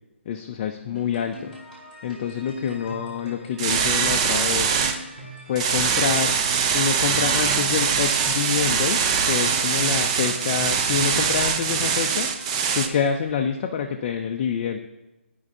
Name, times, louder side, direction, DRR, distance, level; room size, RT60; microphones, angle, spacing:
voice 1, 0.3-1.6 2.0-4.8 5.5-6.4 6.7-12.3 12.7-14.8, left 7 dB, 30° left, 4 dB, 0.4 m, -27 dB
sound 1, 0.9-13.2, equal, 5° right, 2.1 m, -43 dB
sound 2, 3.6-5.0 5.6-12.9, right 6 dB, 30° right, 0.5 m, -22 dB
11.5 x 5.3 x 2.6 m, 1.0 s
figure-of-eight pair, 145°, 7 cm